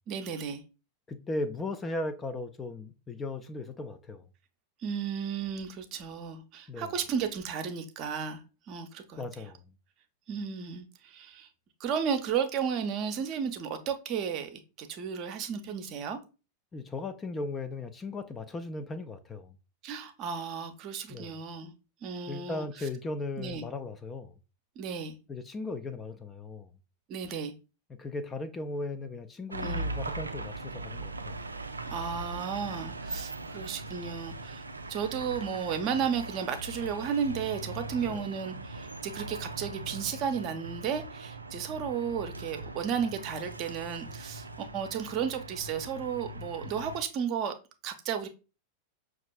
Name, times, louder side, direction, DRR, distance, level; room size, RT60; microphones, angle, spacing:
voice 1, 0.1-0.6 4.8-9.5 10.3-11.5 11.8-16.2 19.8-21.7 22.0-22.9 23.4-23.6 24.8-25.2 27.1-27.5 29.6-29.9 31.9-34.6 34.9-47.5 47.8-48.3, right 7 dB, 40° right, 0.6 m, -34 dB
voice 2, 1.1-4.2 6.7-6.9 9.2-9.6 16.7-19.5 21.1-21.4 22.3-24.3 25.3-26.7 27.9-31.4 38.1-38.2, left 2 dB, 20° left, 0.4 m, -37 dB
sound 1, 29.5-47.0, right 2 dB, 80° right, 0.3 m, -40 dB
5.9 x 2.4 x 2.2 m
figure-of-eight pair, 90°, 0 cm